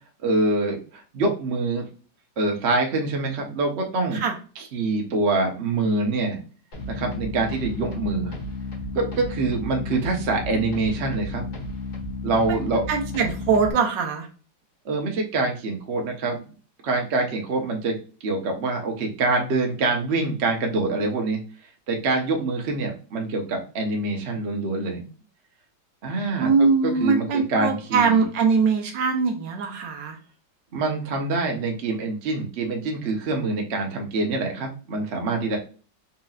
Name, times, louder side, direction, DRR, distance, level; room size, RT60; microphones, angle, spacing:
voice 1, 0.2-1.9 2.4-4.2 4.6-6.4 6.8-8.3 8.9-11.4 12.2-12.9 14.8-16.4 16.8-18.0 18.2-21.4 21.9-25.0 26.0-28.2 30.7-35.6, right 3 dB, 50° right, 1 dB, 0.8 m, -25 dB
sound 1, 6.7-13.7, left 3 dB, 55° left, 1.8 m, -33 dB
voice 2, 12.9-14.3 26.4-30.2, right 5 dB, 75° right, 4 dB, 1.4 m, -22 dB
4.3 x 2.9 x 2.4 m, 0.37 s
omnidirectional pair, 2.1 m